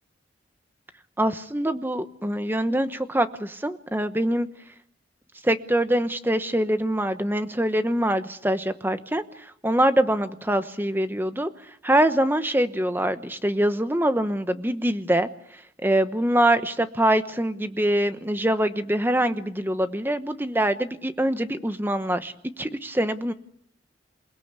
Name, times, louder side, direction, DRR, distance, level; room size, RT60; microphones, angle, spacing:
voice 1, 1.2-4.5 5.4-11.5 11.8-15.3 15.8-23.3, right 1 dB, 10° right, 10 dB, 1.0 m, -24 dB
27.5 x 17.0 x 8.2 m, 0.70 s
head